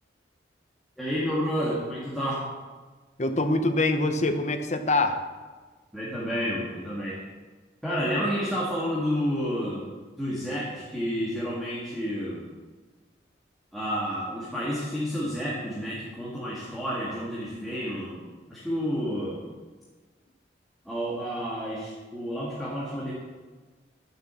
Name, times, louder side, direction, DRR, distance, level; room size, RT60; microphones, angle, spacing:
voice 1, 1.0-2.5 5.9-7.2 7.8-9.9 10.2-12.4 13.7-18.2 18.5-19.4 20.9-23.1, equal, ahead, -7 dB, 2.0 m, -30 dB
voice 2, 3.2-5.2, left 2 dB, 40° left, 7 dB, 1.0 m, -24 dB
11.5 x 7.6 x 6.9 m, 1.4 s
head